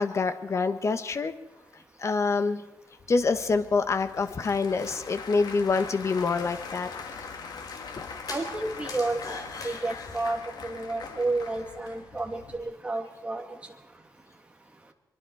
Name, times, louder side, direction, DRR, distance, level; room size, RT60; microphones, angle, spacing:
voice 1, 0.0-1.3 2.0-2.6 3.1-6.9, left 4 dB, 45° left, 10 dB, 1.4 m, -26 dB
Applause / Crowd, 3.0-12.6, left 5 dB, 80° left, 2.4 m, -42 dB
sound 1, 4.2-10.4, left 3 dB, 65° left, 3.9 m, -45 dB
voice 2, 8.3-9.2 9.6-13.4, right 2 dB, 15° right, 3 dB, 2.6 m, -31 dB
24.0 x 23.0 x 4.8 m, 1.0 s
wide cardioid pair, 145°, 7 cm